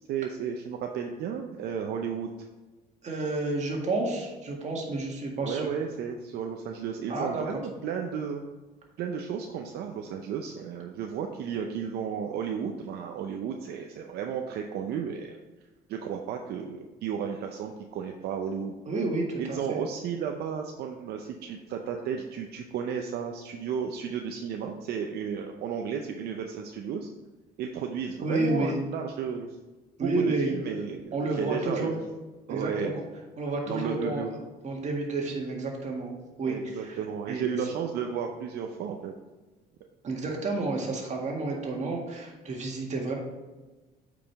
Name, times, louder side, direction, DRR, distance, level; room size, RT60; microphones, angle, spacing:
voice 1, 0.0-2.3 5.4-8.4 9.0-15.4 15.9-18.8 19.4-27.1 27.6-29.6 30.0-32.0 32.5-33.0 33.6-34.3 36.4-39.1, right 7 dB, 70° right, 3 dB, 0.6 m, -33 dB
voice 2, 3.0-5.6 7.1-7.5 18.9-19.8 28.2-28.8 30.0-30.6 31.1-31.9 32.5-33.0 33.4-34.4 34.6-36.9 37.3-37.6 40.0-43.1, right 2 dB, 45° right, 0 dB, 1.8 m, -30 dB
8.7 x 5.0 x 3.4 m, 1.2 s
cardioid pair, 110°, 17 cm